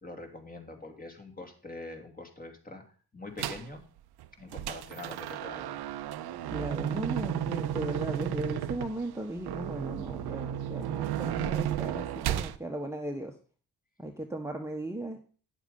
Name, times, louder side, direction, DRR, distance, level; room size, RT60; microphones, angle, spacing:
voice 1, 0.0-2.8 3.1-3.8 4.4-5.8, left 2 dB, 25° left, 3 dB, 2.9 m, -44 dB
sound 1, 3.4-3.7 4.2-12.6, right 11 dB, 85° right, 0.7 m, -33 dB
voice 2, 6.5-13.3 14.0-15.2, right 1 dB, 5° right, 3 dB, 1.2 m, -36 dB
10.0 x 7.2 x 5.4 m, 0.41 s
cardioid pair, 75°, 37 cm